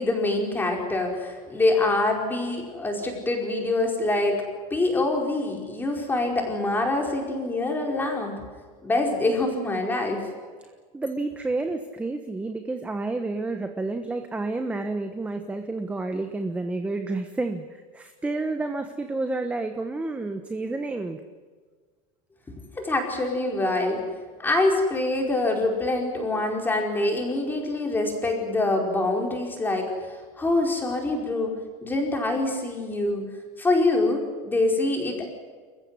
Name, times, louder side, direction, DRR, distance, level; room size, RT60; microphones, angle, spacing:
voice 1, 0.0-4.4 4.7-8.4 8.8-10.3 22.8-24.0 24.4-29.9 30.4-31.5 31.8-33.3 33.6-35.2, left 2 dB, 10° left, 2 dB, 4.9 m, -25 dB
voice 2, 10.9-21.2, right 2 dB, 5° right, 7 dB, 1.2 m, -30 dB
29.0 x 15.0 x 9.7 m, 1.5 s
supercardioid pair, 160°, 19 cm